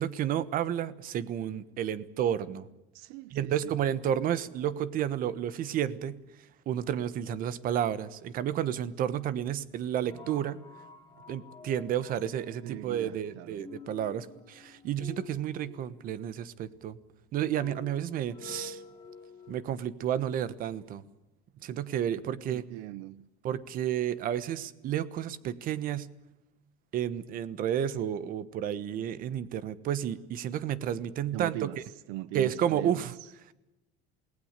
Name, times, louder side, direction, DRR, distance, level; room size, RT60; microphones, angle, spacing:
voice 1, 0.0-2.7 3.3-6.2 6.7-10.6 11.3-17.0 17.3-18.8 19.5-21.0 21.6-22.6 23.4-26.1 26.9-31.6 32.3-33.1, right 10 dB, 40° right, 1.2 m, -31 dB
voice 2, 2.9-3.8 12.6-13.7 22.5-23.3 31.3-33.3, right 16 dB, 80° right, 0.7 m, -40 dB
sound 1, 10.0-19.7, left 5 dB, 15° left, 3.4 m, -50 dB
28.0 x 19.5 x 6.7 m
cardioid pair, 170°, 21 cm